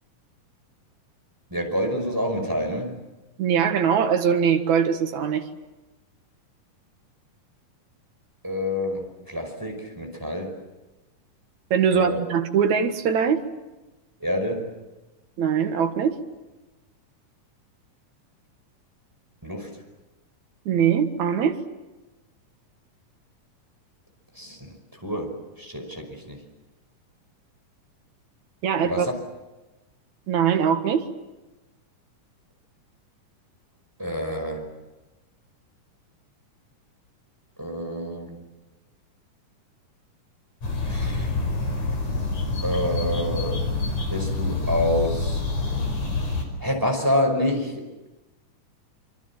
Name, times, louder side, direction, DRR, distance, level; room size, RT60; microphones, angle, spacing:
voice 1, 1.5-3.0 8.4-10.5 11.9-12.2 14.2-14.7 19.4-19.7 24.4-24.8 25.0-26.4 28.8-29.1 34.0-34.7 37.6-38.4 40.9-41.3 42.2-42.3 42.6-43.7 44.1-45.4 46.6-48.1, left 1 dB, 5° right, 2 dB, 5.2 m, -27 dB
voice 2, 3.4-5.5 11.7-13.5 15.4-16.2 20.7-21.6 28.6-29.1 30.3-31.0, right 7 dB, 65° right, 6 dB, 2.9 m, -22 dB
sound 1, 40.6-46.4, left 3 dB, 55° left, 6.1 m, -27 dB
26.0 x 25.5 x 7.4 m, 1.1 s
omnidirectional pair, 3.8 m